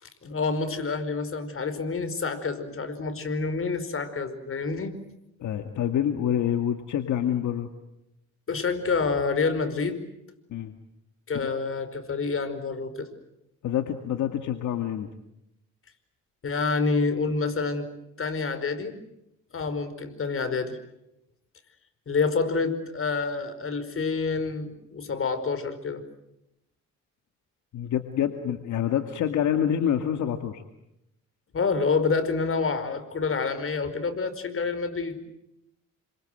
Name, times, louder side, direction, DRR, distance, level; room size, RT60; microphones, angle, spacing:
voice 1, 0.0-4.9 8.5-10.0 11.3-13.1 16.4-17.9 18.2-18.9 19.5-20.8 22.1-26.0 31.5-35.2, left 4 dB, 45° left, 10 dB, 5.0 m, -28 dB
voice 2, 5.4-7.7 10.5-10.7 11.4-11.5 13.6-15.1 27.7-30.6, left 9 dB, 75° left, 6 dB, 2.1 m, -27 dB
29.0 x 26.0 x 7.8 m, 0.85 s
cardioid pair, 90°, 30 cm